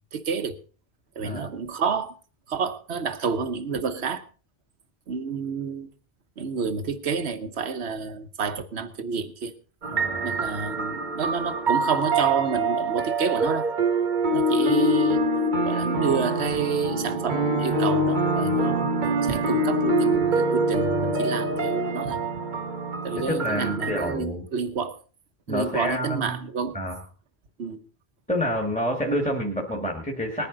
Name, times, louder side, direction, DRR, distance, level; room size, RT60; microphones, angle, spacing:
voice 1, 0.1-0.6 1.2-2.2 2.5-4.2 5.1-5.9 6.4-9.5 10.2-13.7 14.3-15.2 15.6-18.9 19.2-22.2 23.0-25.0 25.5-26.8 27.6-27.8, right 5 dB, 85° right, 10 dB, 1.3 m, -29 dB
voice 2, 1.2-1.6 9.9-10.3 23.2-24.4 25.5-26.4 26.7-27.0 28.3-30.5, equal, 5° left, 1 dB, 1.8 m, -28 dB
sound 1, 9.8-24.1, right 2 dB, 50° right, 1.2 m, -25 dB
19.5 x 10.5 x 3.9 m, 0.37 s
omnidirectional pair, 1.1 m